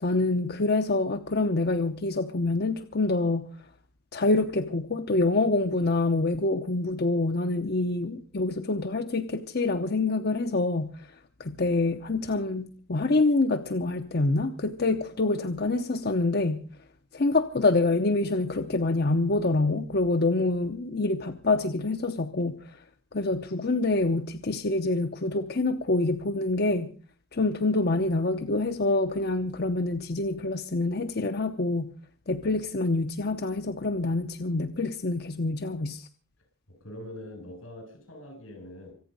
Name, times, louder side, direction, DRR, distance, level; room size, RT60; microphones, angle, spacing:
voice 1, 0.0-3.5 4.1-11.1 11.4-16.6 17.1-22.5 23.1-26.9 27.3-31.9 32.3-36.1, left 2 dB, 50° left, 8 dB, 0.9 m, -26 dB
voice 2, 36.7-38.9, left 1 dB, 90° left, 5 dB, 7.5 m, -43 dB
25.0 x 9.2 x 5.4 m, 0.41 s
head